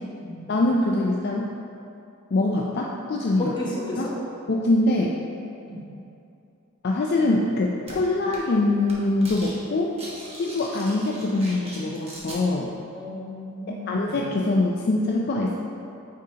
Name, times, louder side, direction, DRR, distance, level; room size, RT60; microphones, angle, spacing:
voice 1, 0.5-1.5 2.3-3.5 4.0-4.1 4.5-5.1 6.8-9.9 10.3-12.7 13.7-15.5, left 2 dB, 45° left, -1 dB, 0.4 m, -23 dB
voice 2, 3.4-4.1 5.7-5.9 12.9-14.1, left 1 dB, 20° left, -6 dB, 1.2 m, -33 dB
sound 1, 7.9-8.0 8.3-8.6 8.8-9.5 9.8-12.4, right 1 dB, 25° right, 1.1 m, -40 dB
9.1 x 4.8 x 2.9 m, 2.7 s
head